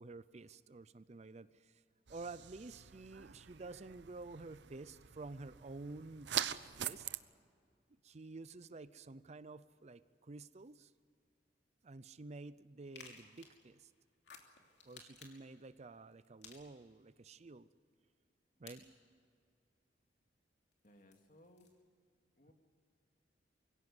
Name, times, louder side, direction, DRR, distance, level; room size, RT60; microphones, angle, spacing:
voice 1, 0.0-1.8 2.1-6.3 6.8-7.1 8.0-10.9 11.8-13.9 14.8-17.7 18.6-19.2, right 3 dB, 40° right, 15 dB, 0.5 m, -51 dB
sound 1, 2.1-7.2, right 10 dB, 75° right, 0.7 m, -44 dB
sound 2, 9.5-11.2 13.5-16.8, left 5 dB, 90° left, 2.9 m, -67 dB
sound 3, 12.9-13.7 14.7-15.5 16.4-17.0 18.7-18.8 20.7-21.8, left 5 dB, 70° left, 4.0 m, -57 dB
voice 2, 20.8-21.8 22.4-22.5, left 1 dB, 50° left, 4 dB, 2.4 m, -63 dB
24.0 x 16.5 x 9.7 m, 2.2 s
head